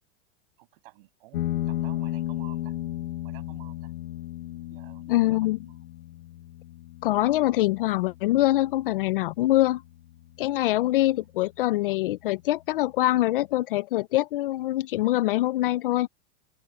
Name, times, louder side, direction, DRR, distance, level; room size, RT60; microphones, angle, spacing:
voice 1, 0.6-2.7 3.2-3.9 4.7-5.9 10.7-10.8 11.2-11.3, right 20 dB, 50° right, 7.5 m, -52 dB
sound 1, 1.3-10.4, left 14 dB, 65° left, 1.4 m, -35 dB
voice 2, 5.1-5.6 7.0-9.8 10.4-16.1, left 16 dB, 45° left, 0.5 m, -24 dB
open air
supercardioid pair, 170°, 37 cm